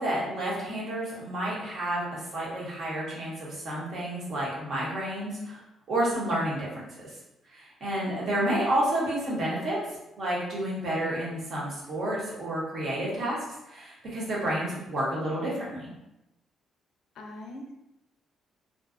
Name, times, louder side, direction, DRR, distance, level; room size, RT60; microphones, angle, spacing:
voice 1, 0.0-5.6 5.9-7.1 7.5-13.4 13.7-15.9, right 1 dB, 60° right, -5 dB, 1.0 m, -30 dB
voice 2, 8.0-8.3 17.2-17.7, left 1 dB, 75° left, 2 dB, 0.4 m, -42 dB
2.6 x 2.3 x 2.4 m, 0.90 s
cardioid pair, 90°, 0 cm